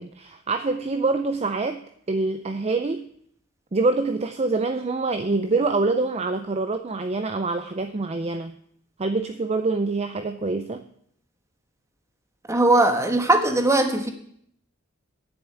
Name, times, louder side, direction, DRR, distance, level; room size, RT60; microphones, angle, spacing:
voice 1, 0.0-1.8 2.1-3.1 3.7-8.6 9.0-10.8, right 3 dB, 30° right, 8 dB, 0.5 m, -25 dB
voice 2, 12.5-14.1, right 2 dB, 15° right, 6 dB, 1.4 m, -19 dB
9.6 x 7.2 x 8.7 m, 0.68 s
head